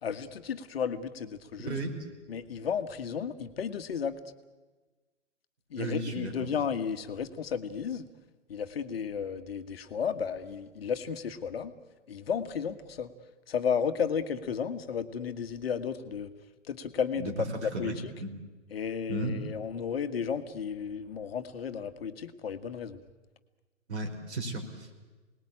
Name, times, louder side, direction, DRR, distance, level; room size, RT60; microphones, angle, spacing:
voice 1, 0.0-1.8 2.3-4.2 5.7-8.1 8.5-11.7 12.1-13.1 13.5-16.3 16.7-17.3 17.6-17.9 18.7-23.0, left 7 dB, 50° left, 8 dB, 1.6 m, -33 dB
voice 2, 1.6-2.0 5.8-6.5 17.2-17.3 17.6-18.3 19.1-19.4 23.9-24.9, right 2 dB, 60° right, 4 dB, 5.4 m, -35 dB
28.5 x 20.0 x 8.8 m, 1.3 s
figure-of-eight pair, 120°, 37 cm